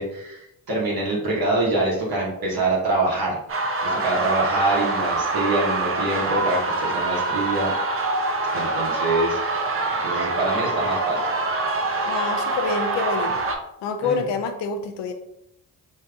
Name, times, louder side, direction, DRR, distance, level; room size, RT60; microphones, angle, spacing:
voice 1, 0.0-7.7 8.5-9.4 10.0-11.3 14.0-14.3, right 2 dB, 50° right, -4 dB, 1.0 m, -25 dB
sound 1, 3.5-13.6, right 3 dB, 30° right, 0.5 m, -25 dB
voice 2, 12.1-13.3 13.8-15.1, left 4 dB, 65° left, 7 dB, 0.6 m, -27 dB
3.5 x 2.7 x 2.3 m, 0.79 s
hypercardioid pair, 40°, 46 cm